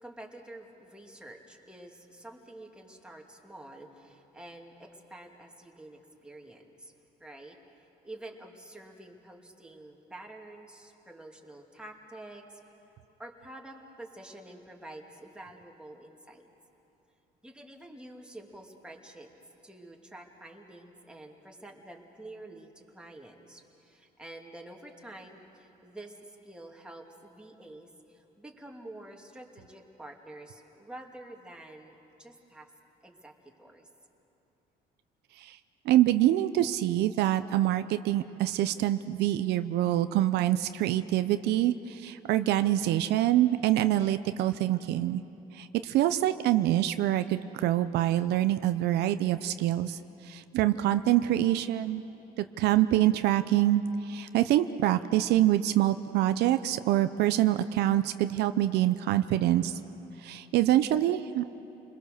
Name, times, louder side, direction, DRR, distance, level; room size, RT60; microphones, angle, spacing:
voice 1, 0.0-6.9 7.2-12.6 13.2-16.5 17.4-19.3 19.6-32.7 33.0-33.9, right 1 dB, 5° right, 0 dB, 2.4 m, -48 dB
voice 2, 35.9-45.2 45.5-50.0 50.2-52.0 52.4-59.8 60.2-61.5, right 13 dB, 80° right, 11 dB, 0.6 m, -25 dB
30.0 x 21.0 x 6.7 m, 3.0 s
cardioid pair, 110°, 17 cm